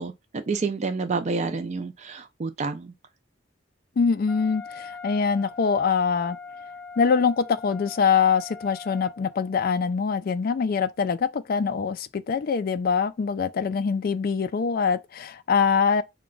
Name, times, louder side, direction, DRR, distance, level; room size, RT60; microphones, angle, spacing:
voice 1, 0.0-2.9, right 4 dB, 35° right, 0.4 m, -29 dB
voice 2, 4.0-6.4 7.0-16.0, left 6 dB, 50° left, 0.3 m, -24 dB
Wind instrument woodwind instrument, 4.3-9.5, left 4 dB, 10° left, 0.7 m, -42 dB
4.8 x 2.2 x 3.8 m
head